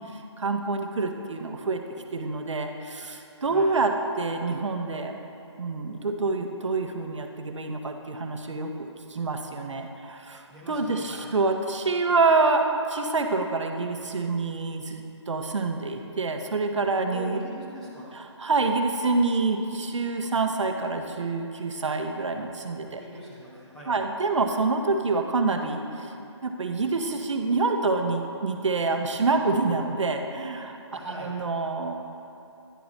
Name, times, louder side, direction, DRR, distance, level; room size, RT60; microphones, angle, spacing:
voice 1, 0.1-1.8 2.1-5.2 5.6-17.4 18.1-23.0 23.9-26.1 26.4-31.9, right 3 dB, 80° right, 5 dB, 0.7 m, -27 dB
voice 2, 10.5-11.3 17.1-18.2 23.0-23.9 30.9-31.3, equal, 5° left, -10 dB, 1.0 m, -41 dB
10.0 x 4.7 x 4.0 m, 2.7 s
hypercardioid pair, 160°, 15 cm